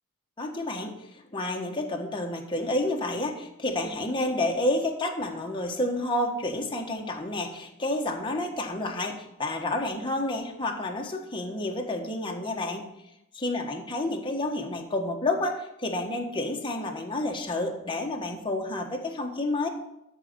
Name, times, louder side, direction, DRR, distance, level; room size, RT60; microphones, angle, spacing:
voice 1, 0.4-0.9 1.3-12.8 13.3-19.7, left 2 dB, 25° left, 2 dB, 1.4 m, -30 dB
13.0 x 5.0 x 6.7 m, 0.84 s
head